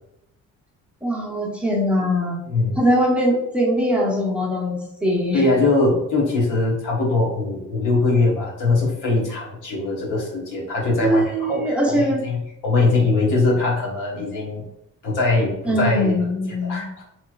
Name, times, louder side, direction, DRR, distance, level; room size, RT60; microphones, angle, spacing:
voice 1, 1.0-2.4 2.8-5.5 11.0-12.2 15.6-16.8, equal, 5° right, -3 dB, 0.8 m, -21 dB
voice 2, 2.5-2.8 5.3-14.6 15.0-16.1 16.6-17.0, left 3 dB, 85° left, -3 dB, 1.1 m, -21 dB
2.9 x 2.9 x 2.4 m, 0.83 s
cardioid pair, 90°, 30 cm